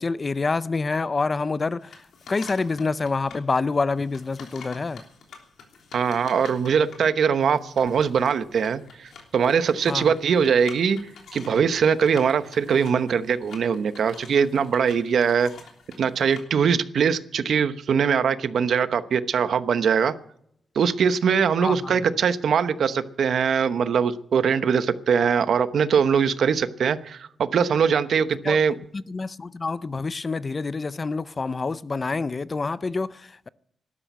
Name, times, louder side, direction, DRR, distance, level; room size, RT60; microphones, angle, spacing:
voice 1, 0.0-5.0 9.9-10.1 21.6-22.0 28.4-33.5, left 4 dB, 30° left, 0.5 m, -27 dB
sound 1, 1.8-3.4 3.9-16.4, left 5 dB, 85° left, 3.2 m, -47 dB
voice 2, 5.9-11.0 11.3-15.5 16.0-20.1 20.7-28.7, right 6 dB, 70° right, 0.9 m, -22 dB
12.5 x 12.0 x 8.2 m
wide cardioid pair, 115°, 0 cm